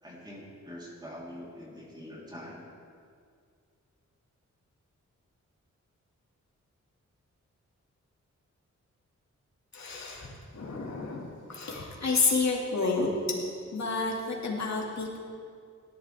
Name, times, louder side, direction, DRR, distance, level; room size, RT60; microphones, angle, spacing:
voice 1, 0.0-2.6, equal, 15° right, -5 dB, 3.9 m, -44 dB
voice 2, 9.7-13.1 13.7-15.2, left 4 dB, 65° left, -2 dB, 2.5 m, -30 dB
18.0 x 11.5 x 3.6 m, 2.2 s
cardioid pair, 75°, 30 cm